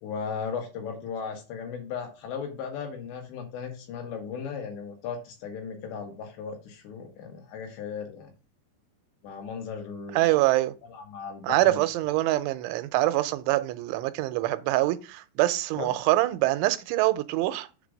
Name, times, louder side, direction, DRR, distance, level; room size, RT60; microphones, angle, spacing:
voice 1, 0.0-8.3 9.2-10.4 10.9-11.8 15.8-15.9, left 6 dB, 75° left, 3.9 m, -36 dB
voice 2, 10.1-10.7 11.4-17.7, right 16 dB, 90° right, 3.0 m, -25 dB
7.7 x 3.4 x 6.3 m
omnidirectional pair, 5.3 m